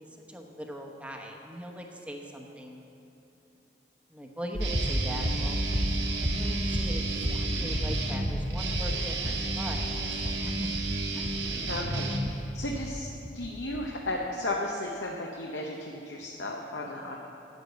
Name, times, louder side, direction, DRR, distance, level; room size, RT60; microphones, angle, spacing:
voice 1, 0.3-2.8 4.1-5.6 6.1-10.8 11.1-11.6 11.9-12.1, equal, 5° right, 1 dB, 1.0 m, -41 dB
sound 1, 4.5-13.0 13.2-13.8, equal, 45° right, 1.4 m, -32 dB
Guitar, 4.6-12.6, right 2 dB, 90° right, 1.4 m, -32 dB
voice 2, 11.7-17.2, left 1 dB, 85° left, 0 dB, 0.9 m, -35 dB
9.6 x 8.1 x 8.0 m, 2.9 s
head